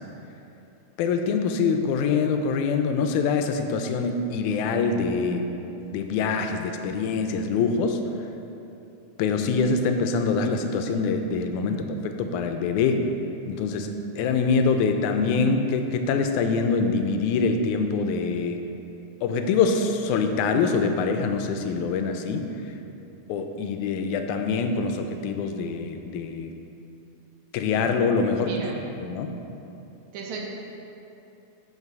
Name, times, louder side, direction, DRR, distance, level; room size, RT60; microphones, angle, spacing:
voice 1, 1.0-5.5 5.9-8.0 9.2-13.1 13.5-18.7 19.2-22.7 23.3-26.5 27.5-28.6 29.0-29.3, left 4 dB, 85° left, 6 dB, 2.0 m, -24 dB
voice 2, 28.4-28.8 30.1-30.4, right 5 dB, 75° right, -1 dB, 2.2 m, -36 dB
8.1 x 5.4 x 4.6 m, 2.9 s
omnidirectional pair, 3.4 m